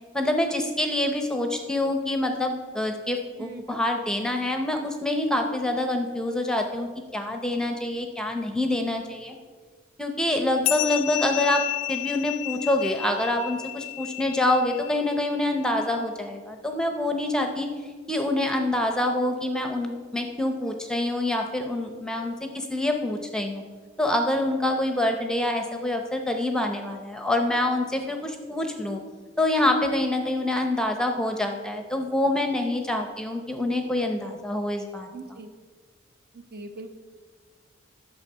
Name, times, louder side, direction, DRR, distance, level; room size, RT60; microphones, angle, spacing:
voice 1, 0.1-9.3 10.0-11.6 11.9-17.7 18.1-23.6 24.0-29.0 29.4-35.1, left 1 dB, 5° left, 4 dB, 0.7 m, -26 dB
sound 1, 10.6-15.5, left 19 dB, 65° left, 0.6 m, -32 dB
voice 2, 35.1-35.5 36.3-36.9, right 3 dB, 50° right, 6 dB, 0.9 m, -40 dB
10.5 x 7.0 x 5.5 m, 1.5 s
head